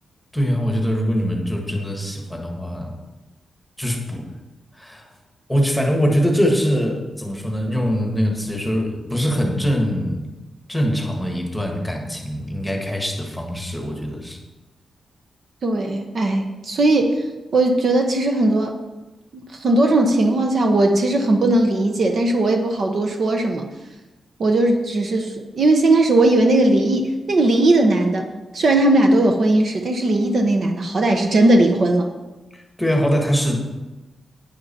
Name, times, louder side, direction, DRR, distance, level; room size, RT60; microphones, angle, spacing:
voice 1, 0.3-2.9 3.8-4.2 4.7-5.0 5.5-10.3 10.7-14.4 32.5-33.6, equal, 5° left, 2 dB, 1.4 m, -22 dB
voice 2, 15.6-17.3 17.5-18.8 19.3-23.6 24.4-28.3 28.5-32.1, right 2 dB, 45° right, 4 dB, 1.0 m, -18 dB
11.0 x 9.5 x 4.3 m, 1.1 s
wide cardioid pair, 180°, 0 cm